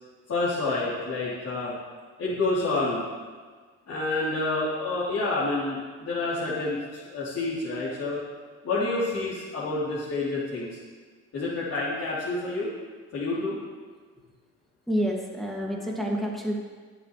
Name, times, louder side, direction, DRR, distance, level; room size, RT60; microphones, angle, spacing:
voice 1, 0.3-1.7 2.2-3.0 3.9-8.2 8.6-10.8 11.3-12.7 13.1-13.6, left 2 dB, 60° left, -10 dB, 3.6 m, -28 dB
voice 2, 14.9-16.6, equal, ahead, -3 dB, 2.4 m, -28 dB
23.0 x 7.7 x 3.4 m, 1.5 s
cardioid pair, 90°, 30 cm